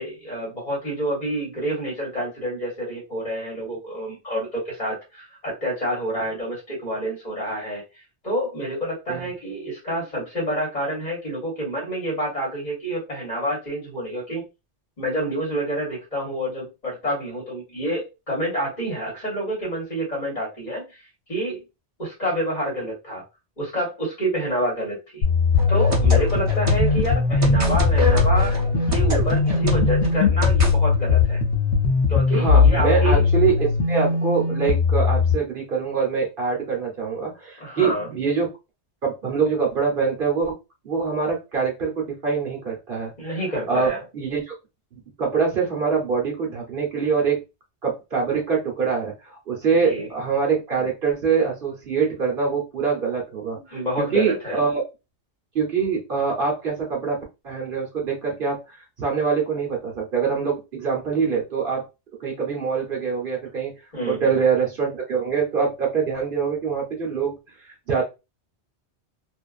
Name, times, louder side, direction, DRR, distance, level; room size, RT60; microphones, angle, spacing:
voice 1, 0.0-14.4 15.0-21.0 21.3-21.6 22.0-23.2 23.6-25.2 25.7-28.6 28.9-31.4 32.1-33.3 37.6-38.1 43.2-44.0 49.8-50.1 53.7-54.6 63.9-64.4, right 1 dB, 40° left, -3 dB, 1.2 m, -28 dB
sound 1, 25.2-35.3, left 5 dB, 65° left, 0.8 m, -20 dB
sound 2, 25.6-30.7, right 1 dB, 35° right, 0.7 m, -25 dB
voice 2, 32.3-38.5 39.0-40.5 40.8-43.4 43.7-44.5 45.2-47.4 47.8-53.8 54.1-54.8 55.5-57.2 57.4-61.8 62.2-63.7 64.1-67.3 67.6-68.0, right 5 dB, 50° right, -1 dB, 1.0 m, -24 dB
2.5 x 2.4 x 2.3 m, 0.26 s
omnidirectional pair, 1.2 m